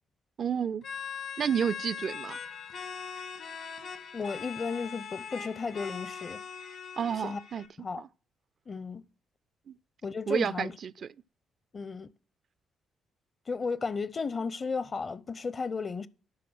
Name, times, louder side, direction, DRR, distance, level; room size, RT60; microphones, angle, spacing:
voice 1, 0.4-0.8 1.4-2.4 7.0-7.6 8.0-8.1 9.7-9.8 10.3-11.1, right 7 dB, 55° right, 0.4 m, -30 dB
sound 1, 0.8-7.7, left 6 dB, 65° left, 1.8 m, -41 dB
voice 2, 4.1-6.4 7.2-7.4 7.8-8.0 8.7-9.0 10.0-10.7 11.7-12.1 13.5-16.1, left 4 dB, 40° left, 0.8 m, -34 dB
12.0 x 4.6 x 6.3 m
hypercardioid pair, 45°, 0 cm